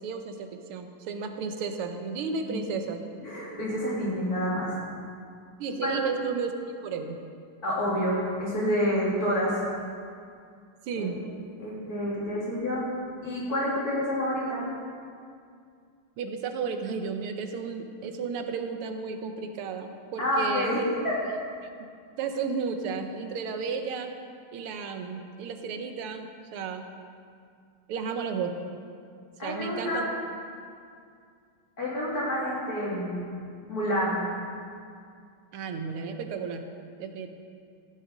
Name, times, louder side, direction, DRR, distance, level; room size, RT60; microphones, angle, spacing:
voice 1, 0.0-3.0 5.6-6.5 6.8-7.2 7.9-8.0 10.9-11.2 16.2-20.9 21.3-21.4 22.2-24.1 24.5-26.9 27.9-28.6 29.4-30.1 35.5-36.7 37.0-37.3, right 5 dB, 90° right, 6 dB, 1.8 m, -33 dB
voice 2, 3.2-4.7 5.8-6.0 7.6-9.6 10.9-11.1 11.6-12.8 13.2-14.6 20.2-20.8 21.0-21.2 29.4-30.0 31.8-33.2 33.7-34.2, equal, 45° left, -6 dB, 3.4 m, -28 dB
14.0 x 7.7 x 6.0 m, 2.3 s
omnidirectional pair, 2.4 m